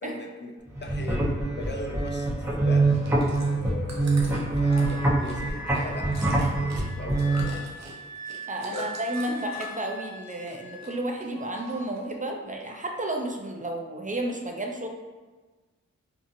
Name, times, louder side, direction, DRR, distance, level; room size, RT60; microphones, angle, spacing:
voice 1, 0.0-0.5 0.8-1.3 1.5-2.3 2.6-2.9 3.3-7.7 8.6-8.9, left 2 dB, 35° left, 2 dB, 0.4 m, -39 dB
sound 1, 0.7-7.4, right 2 dB, 10° right, 0.8 m, -25 dB
Chewing mastication, 2.8-9.9 10.2-10.9 11.2-12.1 12.6-12.7, right 2 dB, 60° right, 0.7 m, -45 dB
Wind instrument woodwind instrument, 4.6-11.0 11.3-12.0, equal, 65° left, 1.1 m, -42 dB
voice 2, 8.5-14.9, right 1 dB, 25° right, 1 dB, 0.4 m, -32 dB
2.7 x 2.4 x 2.5 m, 1.3 s
cardioid pair, 45°, 31 cm